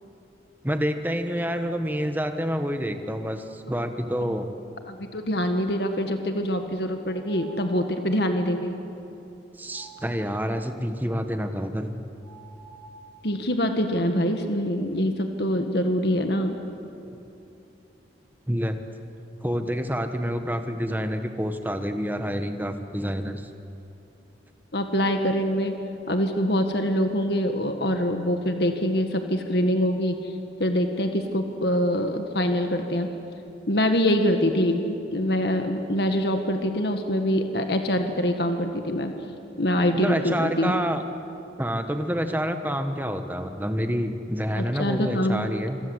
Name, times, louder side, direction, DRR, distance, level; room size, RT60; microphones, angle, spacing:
voice 1, 0.6-4.5 9.6-12.0 17.1-17.2 18.5-18.8 19.4-23.5 39.9-41.0 41.6-45.8, equal, 10° right, 7 dB, 1.3 m, -28 dB
voice 2, 4.9-8.7 13.2-16.6 24.7-25.7 26.1-30.3 30.6-33.1 33.7-39.1 39.6-40.7 44.5-45.5, equal, 60° left, 5 dB, 1.8 m, -24 dB
sound 1, 7.0-8.0 9.7-10.7 12.2-13.3, right 4 dB, 30° left, 6.2 m, -48 dB
26.5 x 26.0 x 8.1 m, 2.8 s
head